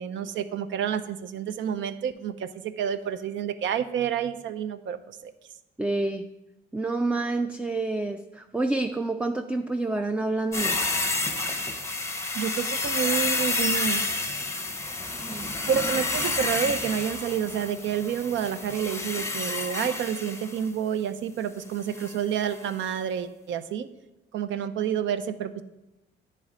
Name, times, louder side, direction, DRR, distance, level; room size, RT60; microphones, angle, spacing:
voice 1, 0.0-5.3 12.3-14.0 15.7-23.9 24.3-25.6, right 8 dB, 70° right, 11 dB, 0.5 m, -29 dB
voice 2, 5.8-6.3 6.7-10.8 15.0-15.6, right 2 dB, 5° right, 6 dB, 0.3 m, -28 dB
sound 1, 10.5-20.7 21.9-22.2 22.5-22.6, left 2 dB, 15° left, 0.6 m, -29 dB
9.5 x 3.2 x 5.0 m, 0.98 s
cardioid pair, 90°, 20 cm